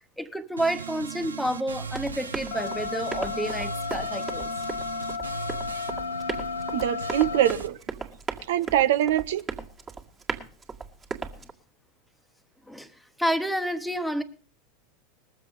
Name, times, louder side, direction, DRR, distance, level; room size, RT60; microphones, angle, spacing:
voice 1, 0.0-4.5 12.7-12.9 13.2-14.2, equal, ahead, 10 dB, 1.2 m, -29 dB
sound 1, 0.6-7.7, right 5 dB, 90° right, 0.9 m, -38 dB
Run, 1.9-11.5, right 5 dB, 25° right, 1.9 m, -37 dB
sound 2, 2.5-7.5, left 6 dB, 60° left, 1.0 m, -33 dB
voice 2, 6.7-7.8 8.5-9.4, right 12 dB, 65° right, 12 dB, 0.6 m, -23 dB
20.0 x 7.5 x 5.2 m, 0.39 s
hypercardioid pair, 90°, 0 cm